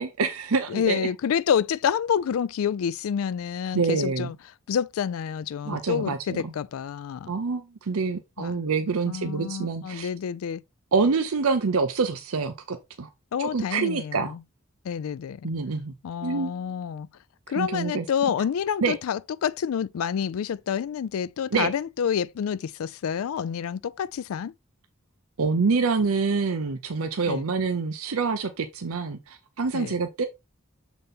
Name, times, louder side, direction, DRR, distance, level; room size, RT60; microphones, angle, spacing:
voice 1, 0.0-1.1 3.7-4.3 5.6-6.5 7.3-10.1 10.9-13.1 13.4-14.3 15.4-15.9 16.2-16.6 17.5-18.0 18.8-19.0 21.5-21.7 25.4-30.2, right 4 dB, 80° right, 0.6 m, -26 dB
voice 2, 0.7-4.4 4.7-7.3 8.4-8.6 9.1-10.6 13.3-14.4 14.8-15.5 16.0-17.1 17.5-24.5 27.3-27.5 29.7-30.0, left 8 dB, 75° left, 0.3 m, -28 dB
6.7 x 4.0 x 3.6 m
head